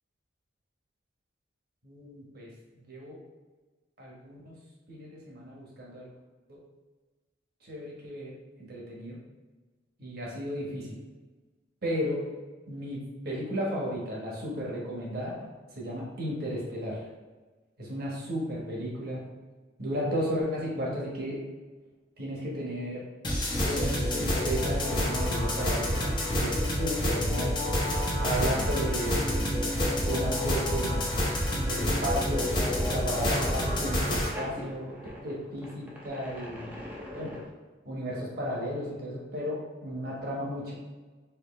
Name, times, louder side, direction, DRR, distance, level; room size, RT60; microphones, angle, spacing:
voice 1, 1.8-2.5 2.7-3.2 4.0-4.5 4.9-6.1 6.5-6.6 7.6-9.2 10.0-11.0 11.8-12.2 12.7-15.5 15.7-17.0 17.8-19.2 19.8-21.4 22.2-23.0 23.5-27.6 28.2-29.4 30.0-31.2 31.6-32.5 32.9-36.8 37.1-37.3 37.8-40.7, equal, 55° right, -4 dB, 1.2 m, -34 dB
sound 1, 23.2-34.3, equal, 25° left, 0.8 m, -28 dB
sound 2, 32.3-37.5, left 1 dB, 10° right, 0.7 m, -41 dB
4.6 x 3.1 x 3.2 m, 1.3 s
head